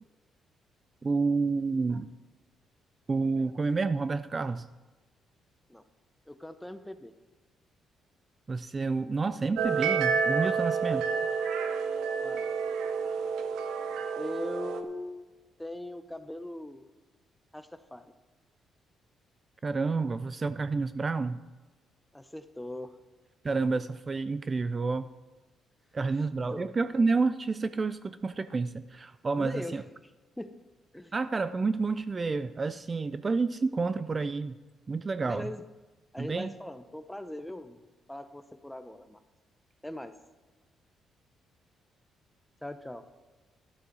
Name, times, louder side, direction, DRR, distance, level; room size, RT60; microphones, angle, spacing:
voice 1, 1.0-2.1 3.1-4.7 8.5-11.0 19.6-21.4 23.4-25.1 25.9-29.8 31.1-34.6 34.9-35.5 36.2-36.5, right 4 dB, 30° right, 13 dB, 0.4 m, -29 dB
voice 2, 6.3-7.1 12.2-12.5 14.1-15.3 15.6-16.8 17.5-18.0 22.1-23.0 26.5-26.7 29.4-29.8 30.4-30.6 30.9-31.1 35.2-35.6 36.1-37.8 38.1-39.2 39.8-40.1 42.6-43.0, left 1 dB, 5° left, 10 dB, 0.8 m, -40 dB
sound 1, 9.6-14.8, right 5 dB, 85° right, 0.9 m, -29 dB
12.0 x 12.0 x 4.0 m, 1.2 s
cardioid pair, 90°, 0 cm